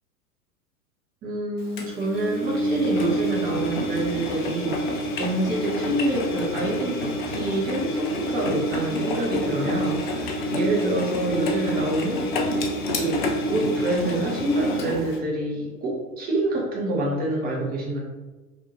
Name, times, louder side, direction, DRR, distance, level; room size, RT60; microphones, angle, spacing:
voice 1, 1.2-12.2 12.9-18.0, right 1 dB, 20° right, -2 dB, 1.0 m, -27 dB
Engine, 1.8-15.2, equal, 35° left, 0.4 m, -28 dB
5.1 x 2.8 x 2.9 m, 1.2 s
figure-of-eight pair, 95°, 47 cm